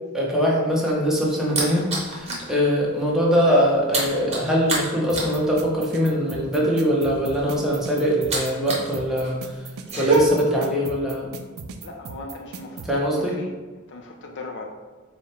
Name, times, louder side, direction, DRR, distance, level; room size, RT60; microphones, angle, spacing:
voice 1, 0.1-9.5 10.0-11.3 12.9-13.4, equal, ahead, -4 dB, 0.7 m, -22 dB
sound 1, 0.7-2.5 2.9-3.1 3.3-8.9 9.2-10.2, right 3 dB, 30° right, 0.9 m, -28 dB
sound 2, 5.1-12.9, right 5 dB, 65° right, 0.4 m, -38 dB
voice 2, 11.8-12.9 13.2-13.5 13.9-14.6, left 3 dB, 55° left, 2 dB, 0.5 m, -38 dB
4.7 x 2.1 x 4.2 m, 1.3 s
head